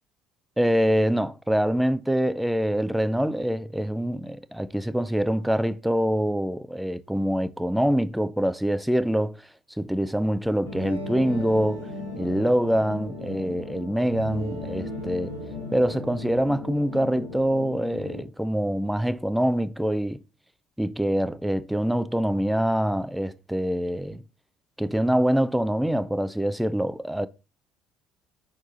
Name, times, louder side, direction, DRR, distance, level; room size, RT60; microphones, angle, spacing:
voice 1, 0.6-9.4 9.8-11.9 12.2-15.3 15.7-20.2 20.8-24.2 24.8-27.3, equal, 5° right, 0.5 m, -25 dB
sound 1, 10.6-18.2, left 2 dB, 85° left, 2.0 m, -36 dB
6.0 x 4.6 x 4.0 m
figure-of-eight pair, 55°, 0 cm